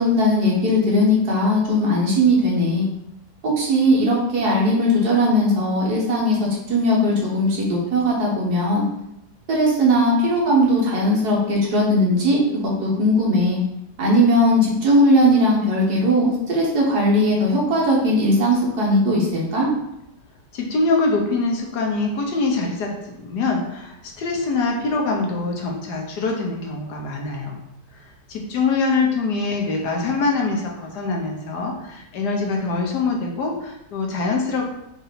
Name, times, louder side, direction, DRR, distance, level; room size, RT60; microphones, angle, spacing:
voice 1, 0.0-2.9 3.4-6.4 6.7-8.8 9.5-12.4 12.8-13.6 14.0-19.7, equal, 65° right, -3 dB, 1.7 m, -18 dB
voice 2, 20.5-27.6 28.3-34.7, left 3 dB, 75° left, 0 dB, 1.4 m, -24 dB
4.8 x 2.7 x 4.1 m, 0.81 s
omnidirectional pair, 1.9 m